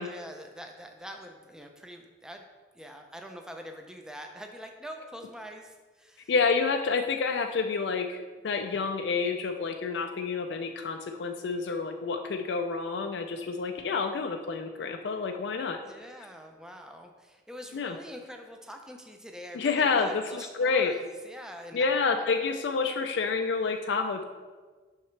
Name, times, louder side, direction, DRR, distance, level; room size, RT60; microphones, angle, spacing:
voice 1, 0.0-2.5 2.7-6.3 15.8-21.9, equal, 5° right, 4 dB, 0.5 m, -44 dB
voice 2, 6.3-15.8 17.7-17.9 19.5-20.9 21.7-24.2, left 4 dB, 75° left, 5 dB, 0.4 m, -28 dB
7.1 x 5.7 x 3.2 m, 1.4 s
head